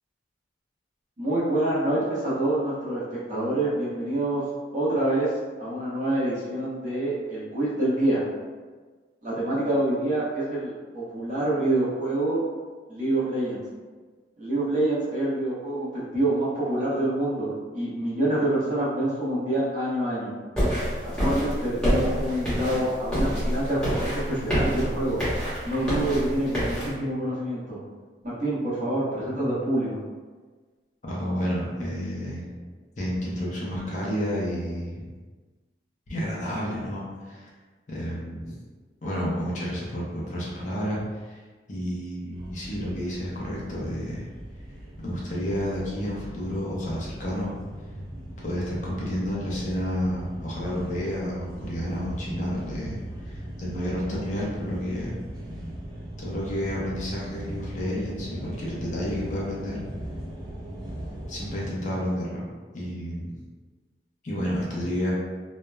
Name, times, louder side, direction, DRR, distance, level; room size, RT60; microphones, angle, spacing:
voice 1, 1.2-4.4 4.7-8.2 9.2-12.4 12.9-13.6 14.4-20.3 21.2-25.2 25.6-27.8 28.2-30.0, right 1 dB, 45° right, -9 dB, 0.9 m, -26 dB
sound 1, 20.6-26.9, equal, 5° left, 0.8 m, -27 dB
voice 2, 31.1-32.5 33.0-35.0 36.1-37.5 37.9-38.5 39.0-41.4 41.7-44.2 45.0-47.5 48.4-55.2 56.2-59.8 61.3-62.4 62.7-63.4 64.2-65.1, equal, 45° left, -5 dB, 0.6 m, -30 dB
sound 2, 42.3-61.7, right 1 dB, 25° right, 0.5 m, -39 dB
2.9 x 2.1 x 2.2 m, 1.4 s
head